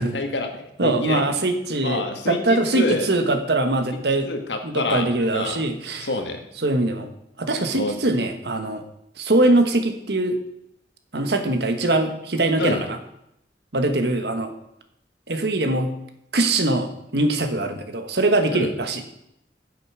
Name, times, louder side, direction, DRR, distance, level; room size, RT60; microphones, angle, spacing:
voice 1, 0.0-1.2 1.8-3.1 4.2-5.1 5.3-5.6 6.0-6.4 7.7-7.9 12.6-12.8 18.5-18.7, left 2 dB, 85° left, 5 dB, 1.8 m, -27 dB
voice 2, 0.8-4.3 4.6-6.1 6.6-7.1 7.4-8.8 9.2-10.4 11.1-13.0 13.7-14.5 15.3-15.9 16.3-19.0, right 2 dB, 70° right, 7 dB, 1.4 m, -22 dB
9.3 x 7.8 x 6.2 m, 0.78 s
head